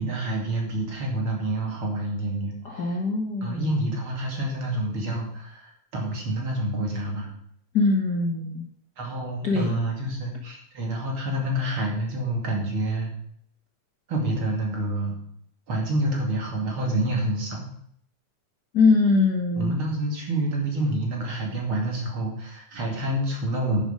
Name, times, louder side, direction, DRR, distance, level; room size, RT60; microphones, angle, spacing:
voice 1, 0.0-3.0 3.4-7.3 9.0-13.1 14.1-15.2 15.7-17.7 19.6-23.8, right 1 dB, 40° right, 0 dB, 2.9 m, -28 dB
voice 2, 2.6-3.7 7.7-8.6 9.4-9.7 18.7-19.8, left 3 dB, 85° left, 0 dB, 0.9 m, -22 dB
10.5 x 9.9 x 5.1 m, 0.67 s
omnidirectional pair, 4.2 m